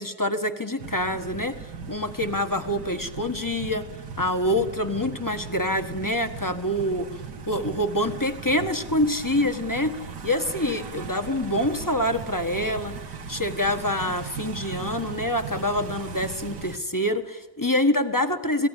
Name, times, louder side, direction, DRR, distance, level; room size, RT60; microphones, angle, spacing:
voice 1, 0.0-1.6 1.9-3.9 4.2-7.1 7.5-10.0 10.2-12.9 13.3-18.7, left 1 dB, 10° left, 7 dB, 1.3 m, -26 dB
sound 1, 0.8-16.8, right 5 dB, 70° right, 2.1 m, -38 dB
29.0 x 18.5 x 10.0 m, 1.1 s
omnidirectional pair, 1.9 m